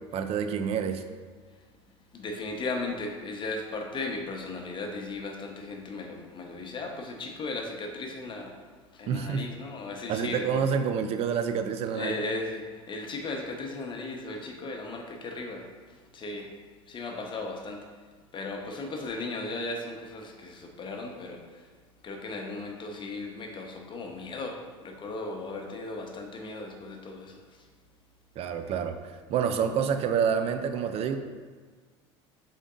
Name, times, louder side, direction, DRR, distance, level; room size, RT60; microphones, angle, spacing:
voice 1, 0.1-1.0 9.1-9.5 10.1-12.2 28.4-29.0 29.3-31.2, right 7 dB, 45° right, 8 dB, 0.4 m, -28 dB
voice 2, 2.1-8.5 8.9-10.7 11.9-15.6 16.1-16.5 16.9-17.8 18.3-21.4 22.0-27.4, left 3 dB, 35° left, 2 dB, 0.8 m, -36 dB
3.7 x 3.7 x 3.7 m, 1.5 s
hypercardioid pair, 85°, 15 cm